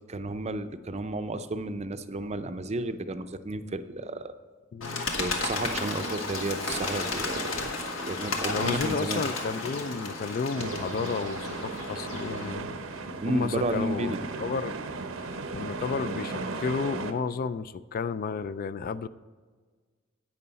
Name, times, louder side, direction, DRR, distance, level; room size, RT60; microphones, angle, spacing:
voice 1, 0.1-4.3 5.2-7.5 8.0-9.2 13.2-14.2, right 2 dB, 35° right, 10 dB, 0.5 m, -32 dB
voice 2, 4.7-5.1 7.5-7.6 8.5-12.7 13.2-14.1 14.4-14.8 15.2-19.1, left 5 dB, 45° left, 15 dB, 0.3 m, -32 dB
Bird, 4.8-12.5, left 3 dB, 85° left, 1.6 m, -33 dB
sound 1, 10.6-17.1, right 3 dB, 85° right, 0.8 m, -36 dB
11.0 x 8.6 x 4.1 m, 1.5 s
head